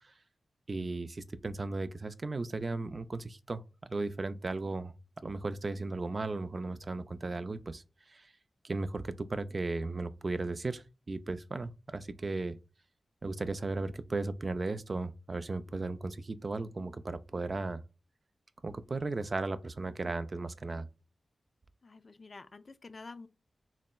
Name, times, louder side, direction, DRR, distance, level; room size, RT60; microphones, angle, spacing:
voice 1, 0.7-4.9 5.2-7.8 8.1-8.3 8.6-12.6 13.2-17.8 18.6-20.9, right 3 dB, 50° right, 0.3 m, -36 dB
voice 2, 21.8-23.3, left 3 dB, 55° left, 0.4 m, -49 dB
3.9 x 2.1 x 2.2 m
cardioid pair, 40°, 0 cm